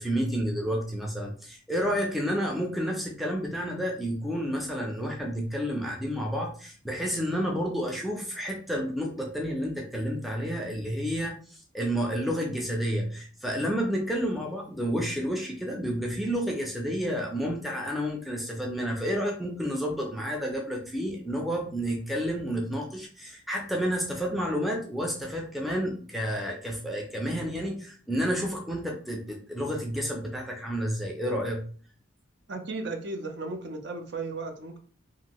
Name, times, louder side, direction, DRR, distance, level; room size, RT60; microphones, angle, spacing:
voice 1, 0.0-31.6, equal, ahead, -1 dB, 0.4 m, -30 dB
voice 2, 32.5-34.8, right 3 dB, 60° right, 5 dB, 0.6 m, -35 dB
2.6 x 2.5 x 2.9 m, 0.43 s
head